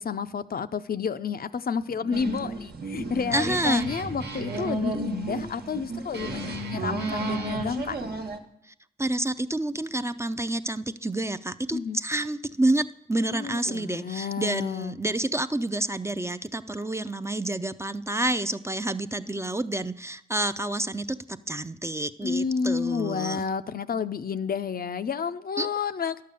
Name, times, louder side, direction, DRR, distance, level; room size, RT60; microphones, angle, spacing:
voice 1, 0.0-8.1 11.7-12.0 13.3-15.0 22.2-26.2, left 6 dB, 60° left, 11 dB, 0.5 m, -30 dB
Guitar, 1.9-7.7, right 3 dB, 85° right, 1.0 m, -37 dB
sound 1, 2.1-8.4, right 3 dB, 70° right, 1.2 m, -34 dB
voice 2, 3.3-3.9 9.0-23.4 25.6-25.7, right 1 dB, 15° right, 11 dB, 0.5 m, -28 dB
11.0 x 6.6 x 6.9 m, 0.74 s
cardioid pair, 50°, 17 cm